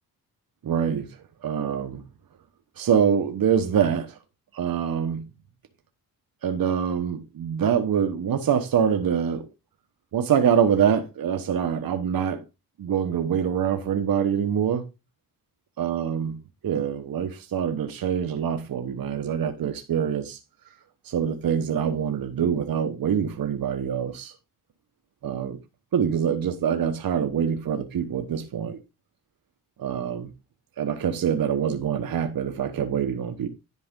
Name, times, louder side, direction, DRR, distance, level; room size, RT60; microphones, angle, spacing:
voice 1, 0.6-1.1 1.4-2.0 2.8-4.2 4.5-5.2 6.4-9.5 10.1-12.4 12.8-14.8 15.8-16.3 16.6-20.4 21.0-24.3 25.2-25.6 25.9-28.8 29.8-30.3 30.8-33.5, right 8 dB, 65° right, 1.1 m, -25 dB
10.5 x 4.8 x 3.7 m
cardioid pair, 75°, 38 cm